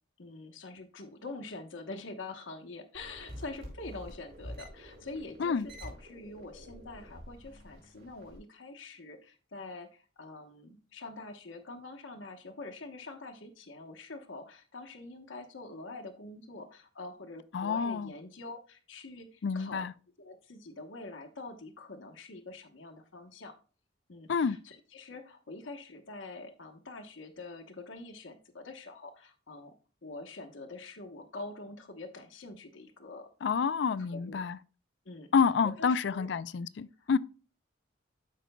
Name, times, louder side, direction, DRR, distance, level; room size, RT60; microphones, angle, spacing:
voice 1, 0.2-19.9 20.2-23.6 24.1-29.7 30.0-33.7 34.1-34.4 35.0-35.3 35.6-36.3 37.0-37.2, left 3 dB, 85° left, 1.0 m, -45 dB
sound 1, 2.9-8.4, equal, 55° right, 4.4 m, -48 dB
voice 2, 17.5-18.1 19.4-19.9 24.3-24.6 33.4-34.6 35.3-37.2, left 5 dB, 60° left, 0.4 m, -28 dB
13.0 x 5.1 x 2.2 m
head